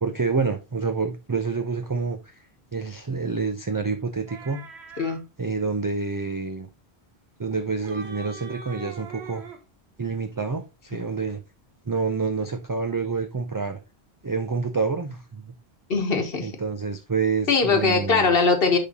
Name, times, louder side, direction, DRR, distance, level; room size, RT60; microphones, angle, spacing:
voice 1, 0.0-2.3 2.7-4.6 5.4-6.7 7.4-9.4 10.0-11.4 11.9-13.8 14.2-15.5 16.4-18.3, right 4 dB, 30° right, 0.4 m, -27 dB
sound 1, 4.3-5.2 7.5-9.6, right 5 dB, 90° right, 1.3 m, -41 dB
voice 2, 15.9-16.5 17.5-18.8, left 4 dB, 65° left, 1.4 m, -21 dB
10.0 x 3.6 x 2.8 m
omnidirectional pair, 1.1 m